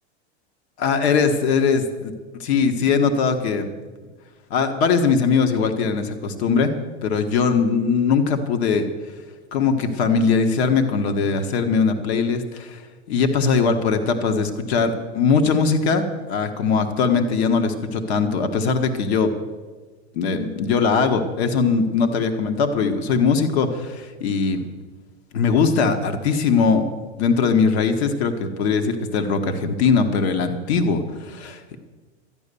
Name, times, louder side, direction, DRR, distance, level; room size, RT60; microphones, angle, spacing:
voice 1, 0.8-2.1 2.4-3.7 4.5-6.7 7.0-8.8 9.5-12.8 13.1-19.3 20.1-24.6 25.3-26.8 27.2-31.8, left 5 dB, 70° left, 7 dB, 1.5 m, -20 dB
13.0 x 10.0 x 6.9 m, 1.4 s
supercardioid pair, 120°, 33 cm